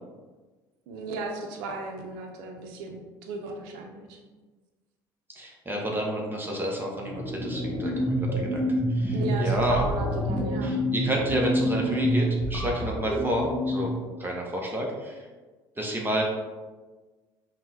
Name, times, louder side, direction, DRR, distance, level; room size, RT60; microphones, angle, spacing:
voice 1, 0.9-4.2 9.1-10.7, right 3 dB, 80° right, 3 dB, 0.6 m, -35 dB
voice 2, 5.4-8.6 8.9-9.8 10.6-15.2 15.8-16.2, right 1 dB, 20° right, -1 dB, 0.9 m, -30 dB
sound 1, 7.0-14.1, equal, 20° left, 1.3 m, -27 dB
5.6 x 2.2 x 2.8 m, 1.3 s
supercardioid pair, 75°, 11 cm